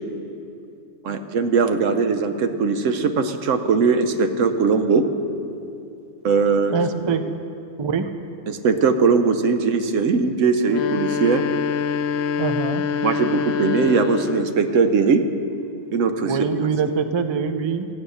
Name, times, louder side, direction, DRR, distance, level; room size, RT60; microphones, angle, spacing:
voice 1, 1.0-5.1 6.2-6.7 8.5-11.4 13.0-15.2 15.9-16.4, right 5 dB, 75° right, 8 dB, 1.1 m, -20 dB
voice 2, 6.7-7.2 7.8-8.1 12.4-12.8 16.2-17.9, right 5 dB, 45° right, 9 dB, 0.3 m, -23 dB
sound 1, 10.6-14.6, left 7 dB, 65° left, 0.8 m, -25 dB
14.0 x 9.7 x 6.4 m, 2.6 s
omnidirectional pair, 1.3 m